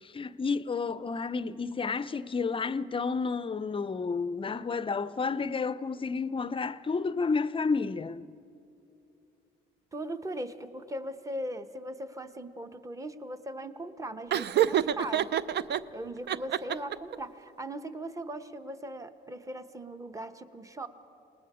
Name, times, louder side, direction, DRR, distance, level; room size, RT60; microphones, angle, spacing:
voice 1, 0.0-8.3, left 4 dB, 25° left, 0.5 m, -31 dB
voice 2, 9.9-15.3 15.9-20.9, right 1 dB, 15° right, 1.0 m, -39 dB
Laughter, 14.3-15.8 16.3-17.2, right 10 dB, 60° right, 0.5 m, -27 dB
27.5 x 19.5 x 4.9 m
cardioid pair, 90°, 20 cm